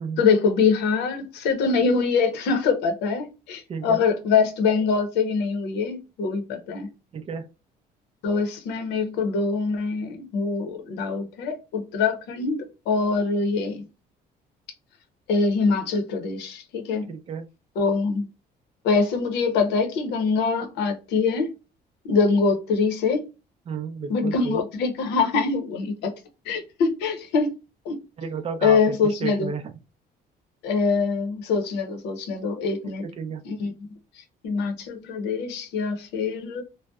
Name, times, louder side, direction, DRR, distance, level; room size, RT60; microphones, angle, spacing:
voice 1, 0.2-6.9 8.2-13.8 15.3-17.1 17.8-18.3 18.8-21.5 22.0-23.2 24.1-26.1 26.5-27.5 27.9-28.0 28.6-29.5 30.6-33.0 33.4-33.7 34.4-36.6, left 4 dB, 85° left, 0.7 m, -24 dB
voice 2, 3.7-4.1 7.1-7.5 17.1-17.5 23.7-24.6 28.2-29.7 33.0-33.4, right 5 dB, 35° right, 0.4 m, -32 dB
2.6 x 2.0 x 2.2 m
cardioid pair, 110°, 17 cm